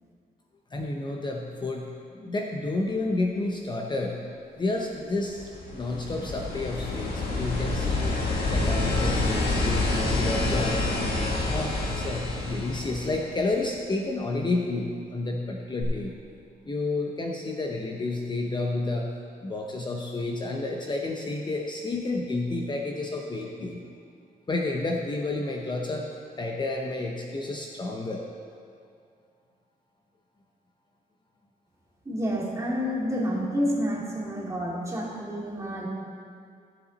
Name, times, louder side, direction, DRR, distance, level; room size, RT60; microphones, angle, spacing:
voice 1, 0.7-4.2 4.6-8.2 8.5-11.0 11.4-16.1 16.7-19.1 19.4-23.8 24.5-26.1 26.4-28.2, left 2 dB, 30° left, 1 dB, 0.7 m, -30 dB
sound 1, 5.2-13.7 15.8-15.9, left 2 dB, 85° left, 1.6 m, -28 dB
voice 2, 32.1-35.9, equal, 20° right, -5 dB, 2.4 m, -29 dB
14.5 x 7.1 x 4.1 m, 2.3 s
cardioid pair, 110°, 16 cm